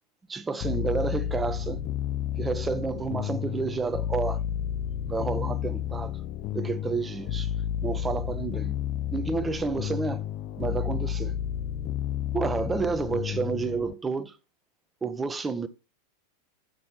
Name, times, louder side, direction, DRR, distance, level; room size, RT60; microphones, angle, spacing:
voice 1, 0.3-1.8 2.4-4.4 5.0-6.2 6.5-7.5 7.8-8.8 9.1-10.2 10.6-11.3 12.3-14.4 15.0-15.7, right 4 dB, 15° right, 0.8 m, -30 dB
sound 1, 0.6-13.9, left 10 dB, 40° left, 0.6 m, -31 dB
8.6 x 6.3 x 4.1 m
figure-of-eight pair, 90°, 0 cm